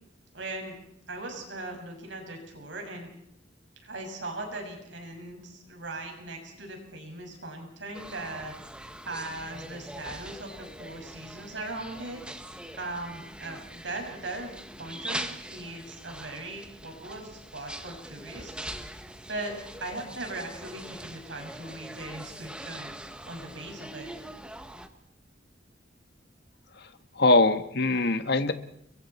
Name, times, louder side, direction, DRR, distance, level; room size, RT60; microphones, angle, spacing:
voice 1, 0.3-0.7 1.1-3.1 3.8-8.5 9.0-12.2 12.8-14.5 14.8-18.7 19.3-22.9 23.3-24.1, right 2 dB, 80° right, 3 dB, 6.2 m, -39 dB
sound 1, 7.9-24.9, right 1 dB, 5° right, 1.3 m, -42 dB
voice 2, 27.1-28.5, left 2 dB, 65° left, 9 dB, 1.5 m, -22 dB
30.0 x 23.5 x 4.4 m, 0.70 s
head